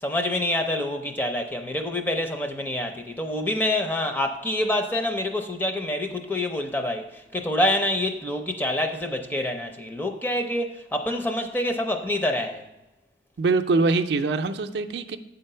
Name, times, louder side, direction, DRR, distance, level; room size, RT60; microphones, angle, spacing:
voice 1, 0.0-12.7, left 1 dB, 10° left, 0.5 m, -26 dB
voice 2, 13.4-15.2, right 3 dB, 70° right, 0.4 m, -23 dB
8.2 x 4.0 x 5.5 m
head